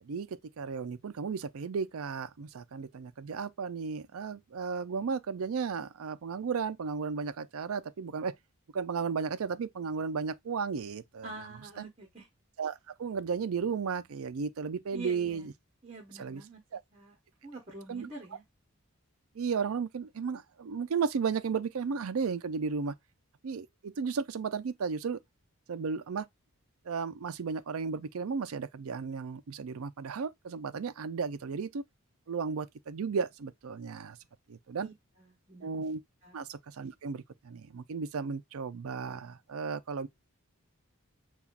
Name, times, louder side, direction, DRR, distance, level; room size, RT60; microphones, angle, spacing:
voice 1, 0.0-8.4 8.7-11.3 11.8-11.9 12.6-15.5 16.2-16.4 16.7-16.8 17.9-18.1 19.3-22.9 23.4-25.2 25.7-26.3 26.8-31.8 32.3-34.2 34.5-34.9 35.6-36.0 36.3-40.1, right 5 dB, 80° right, 0.4 m, -34 dB
voice 2, 11.2-12.3 14.9-15.5 15.8-16.6 16.9-17.2 17.4-18.4 34.8-34.9 35.2-35.7 36.2-36.4, right 3 dB, 30° right, 1.0 m, -46 dB
7.0 x 2.4 x 2.4 m
head